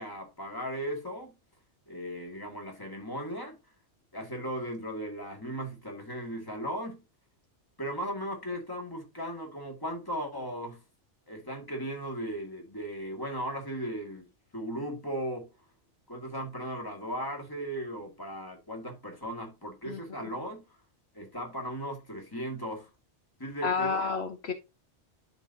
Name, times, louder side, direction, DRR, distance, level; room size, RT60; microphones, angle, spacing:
voice 1, 0.0-1.4 1.9-3.6 4.1-7.0 7.8-10.8 11.3-14.3 14.5-15.5 16.1-20.6 21.1-22.9 23.4-24.1, equal, 20° left, 2.1 m, -37 dB
voice 2, 23.6-24.5, left 5 dB, 65° left, 1.1 m, -30 dB
12.0 x 4.1 x 2.7 m
omnidirectional pair, 1.2 m